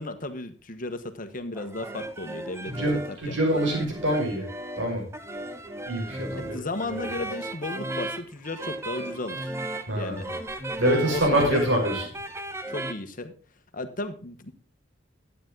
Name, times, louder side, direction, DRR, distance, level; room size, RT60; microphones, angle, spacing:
voice 1, 0.0-3.4 3.7-3.9 6.3-9.5 10.0-10.3 10.8-11.7 12.7-13.3 13.7-14.5, left 2 dB, 45° left, 9 dB, 1.3 m, -34 dB
sound 1, 1.6-12.9, right 1 dB, 15° right, 0.9 m, -36 dB
voice 2, 2.7-4.4 4.8-5.0 5.9-6.6 9.9-10.3 10.8-12.1, right 1 dB, 85° right, 0 dB, 5.3 m, -25 dB
12.0 x 9.2 x 3.8 m, 0.37 s
head